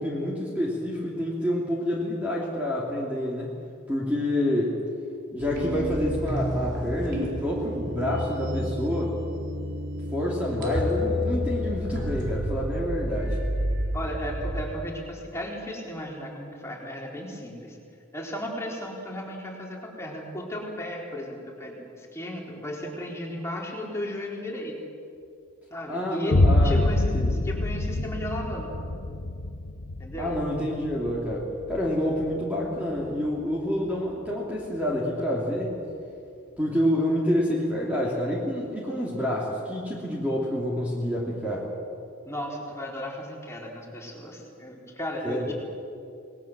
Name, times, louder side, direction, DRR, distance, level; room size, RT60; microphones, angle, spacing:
voice 1, 0.0-3.5 3.9-4.8 5.3-9.2 10.1-13.4 25.9-26.8 27.1-27.5 30.2-35.7 36.6-41.7 45.2-45.5, equal, 5° right, -4 dB, 3.0 m, -28 dB
sound 1, 5.4-14.7, left 1 dB, 50° right, 4.0 m, -30 dB
voice 2, 13.9-17.8 18.1-24.8 25.7-28.7 30.0-30.3 42.3-45.5, left 1 dB, 15° left, -2 dB, 4.1 m, -35 dB
Boom, 26.3-34.1, left 1 dB, 65° left, 0.9 m, -27 dB
28.0 x 20.0 x 7.6 m, 2.5 s
head